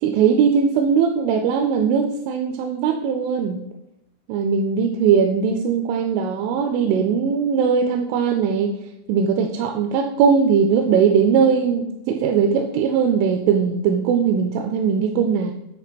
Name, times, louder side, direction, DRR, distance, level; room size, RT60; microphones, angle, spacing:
voice 1, 0.0-3.6 4.3-8.8 9.1-15.5, right 6 dB, 85° right, 4 dB, 3.0 m, -19 dB
9.6 x 3.3 x 5.1 m, 0.85 s
omnidirectional pair, 5.5 m